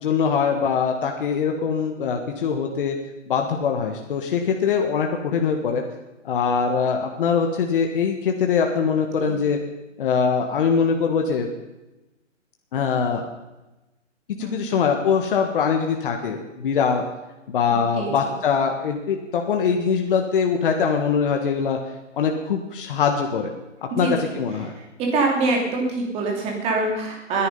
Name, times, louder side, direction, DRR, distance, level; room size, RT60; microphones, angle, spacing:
voice 1, 0.0-3.0 3.3-5.8 6.2-9.6 10.0-11.5 12.7-13.3 14.4-17.0 17.5-21.8 22.2-23.5 24.0-24.7, left 6 dB, 45° left, 3 dB, 1.6 m, -22 dB
voice 2, 17.7-18.1 23.9-24.1 25.1-27.5, right 3 dB, 15° right, 0 dB, 2.9 m, -24 dB
20.5 x 10.5 x 5.5 m, 1.0 s
hypercardioid pair, 160°, 38 cm